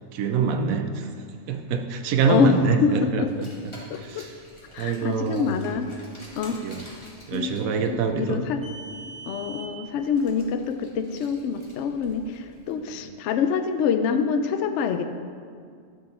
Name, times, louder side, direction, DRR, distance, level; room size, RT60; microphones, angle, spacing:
voice 1, 0.1-1.1 1.5-3.5 4.0-4.3 4.8-5.6 6.6-6.8 7.3-8.4 13.1-13.2, right 5 dB, 85° right, 6 dB, 1.0 m, -25 dB
voice 2, 2.3-3.3 3.9-4.3 4.7-5.9 6.4-6.6 7.3-7.6 7.9-8.6 9.3-15.0, left 6 dB, 70° left, 8 dB, 0.8 m, -26 dB
Car, 3.2-12.7, right 2 dB, 20° left, 1.7 m, -46 dB
11.0 x 6.3 x 4.4 m, 2.2 s
omnidirectional pair, 1.4 m